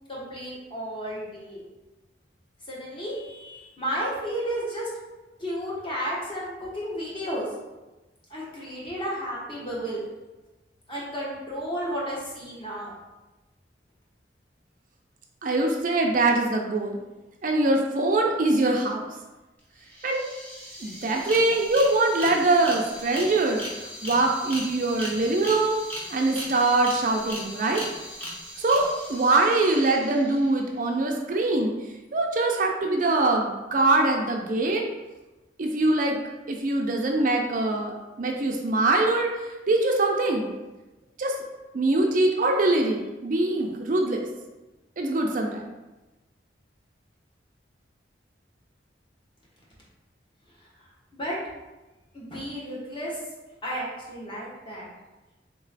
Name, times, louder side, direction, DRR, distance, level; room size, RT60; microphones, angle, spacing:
voice 1, 0.1-1.6 2.7-4.9 5.4-7.5 8.3-10.0 10.9-12.9 51.1-51.4 52.1-53.2 53.6-54.9, equal, 30° left, -6 dB, 1.2 m, -32 dB
voice 2, 15.4-17.0 17.4-19.0 20.0-20.3 20.8-25.8 26.1-27.8 28.6-31.7 32.1-34.8 35.6-36.2 36.5-39.3 39.7-40.5 41.2-41.3 41.7-44.3 45.0-45.7, right 2 dB, 45° right, 1 dB, 0.4 m, -23 dB
sound 1, 19.6-19.7 19.9-30.7, left 1 dB, 10° left, 0.8 m, -38 dB
3.6 x 3.0 x 4.0 m, 1.1 s
head